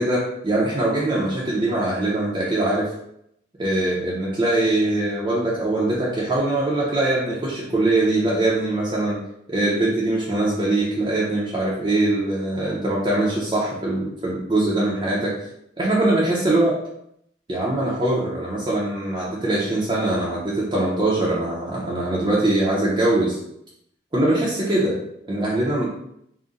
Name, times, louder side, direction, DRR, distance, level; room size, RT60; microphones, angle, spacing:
voice 1, 0.0-2.9 3.6-9.2 9.5-15.3 15.8-16.8 17.5-23.4 24.1-25.0 25.3-25.9, right 2 dB, 25° right, -7 dB, 0.6 m, -22 dB
3.6 x 2.1 x 3.9 m, 0.75 s
head